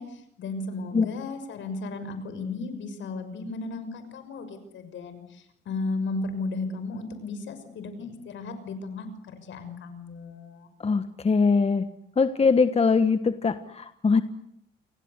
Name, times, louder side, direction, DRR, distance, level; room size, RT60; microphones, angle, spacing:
voice 1, 0.0-10.7, left 3 dB, 70° left, 10 dB, 6.2 m, -35 dB
voice 2, 10.8-11.8 12.2-14.2, left 4 dB, 30° left, 10 dB, 1.5 m, -22 dB
29.5 x 23.5 x 8.2 m, 0.73 s
cardioid pair, 90°, 20 cm